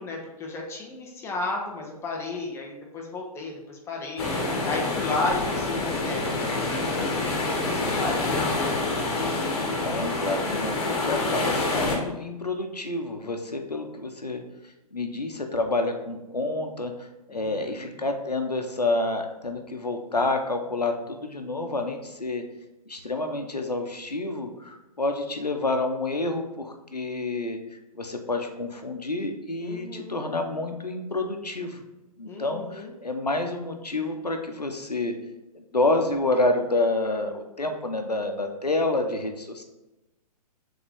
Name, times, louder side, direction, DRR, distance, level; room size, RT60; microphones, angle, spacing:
voice 1, 0.0-4.3 4.6-7.3 7.6-8.8 17.3-18.0 29.6-30.3 32.2-32.9, left 3 dB, 15° left, 0 dB, 1.0 m, -34 dB
sound 1, 4.2-12.0, left 2 dB, 45° left, 1.5 m, -27 dB
voice 2, 9.8-14.4 14.9-22.4 22.9-27.6 27.9-31.8 32.2-35.1 35.5-39.6, left 2 dB, 90° left, 5 dB, 0.9 m, -28 dB
7.3 x 3.9 x 3.4 m, 1.0 s
figure-of-eight pair, 120°, 20 cm